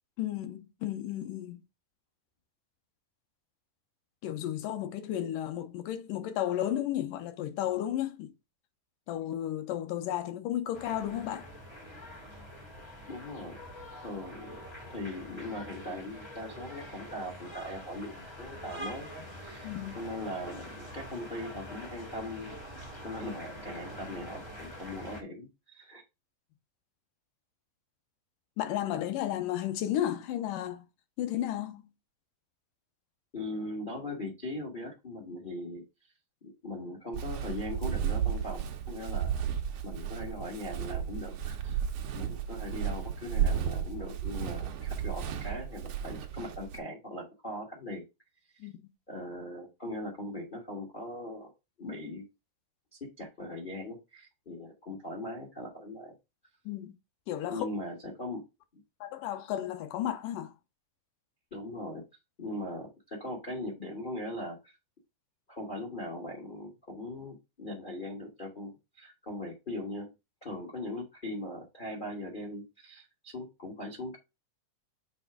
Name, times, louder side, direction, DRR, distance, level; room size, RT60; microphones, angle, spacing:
voice 1, 0.2-1.6 4.2-8.3 9.1-11.5 19.6-20.0 28.6-30.8 31.2-31.8 48.6-48.8 56.7-56.9 57.3-57.7 59.0-60.5, left 12 dB, 90° left, 2.4 m, -33 dB
sound 1, 10.7-25.2, equal, 10° left, 2.3 m, -45 dB
voice 2, 13.1-13.6 14.0-19.7 20.0-22.5 23.0-26.0 33.3-35.8 36.4-39.4 39.8-48.0 49.1-51.5 51.8-52.3 53.2-56.1 57.5-58.4 58.7-58.8 61.5-62.0 62.4-64.7 65.5-70.1 70.4-74.2, left 1 dB, 55° left, 0.5 m, -40 dB
Walk footsteps, 37.1-46.8, right 9 dB, 70° right, 1.6 m, -33 dB
6.8 x 3.3 x 5.9 m
omnidirectional pair, 3.7 m